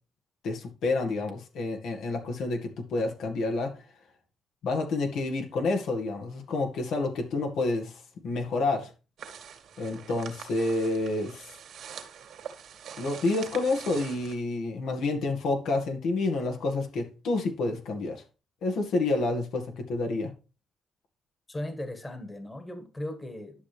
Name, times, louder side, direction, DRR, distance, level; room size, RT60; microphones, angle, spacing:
voice 1, 0.4-3.8 4.6-8.9 9.8-11.5 13.0-18.2 18.6-20.3, left 2 dB, 75° left, 2.0 m, -29 dB
sound 1, 9.2-14.4, right 8 dB, 70° right, 2.1 m, -44 dB
voice 2, 21.5-23.6, left 1 dB, 20° left, 1.7 m, -37 dB
11.0 x 6.1 x 3.4 m
cardioid pair, 90°, 0 cm